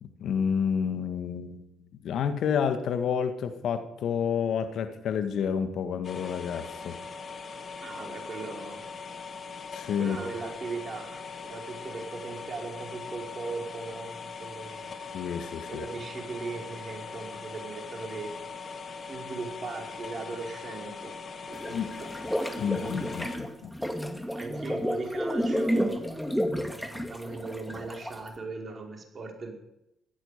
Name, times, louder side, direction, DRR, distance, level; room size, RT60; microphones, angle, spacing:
voice 1, 0.0-1.7 2.0-7.0 9.7-10.2 15.1-15.9 21.7-21.9 22.6-23.7, left 7 dB, 70° left, 9 dB, 1.7 m, -29 dB
sound 1, 6.0-23.4, left 5 dB, 50° left, 2.4 m, -41 dB
voice 2, 7.8-8.8 10.0-14.9 15.7-18.3 19.1-21.2 21.5-22.1 24.3-26.1 26.5-29.5, right 3 dB, 45° right, 1 dB, 5.0 m, -38 dB
sound 2, 21.5-28.3, equal, ahead, 2.3 m, -31 dB
16.5 x 14.0 x 5.2 m, 0.85 s
hypercardioid pair, 50°, 0 cm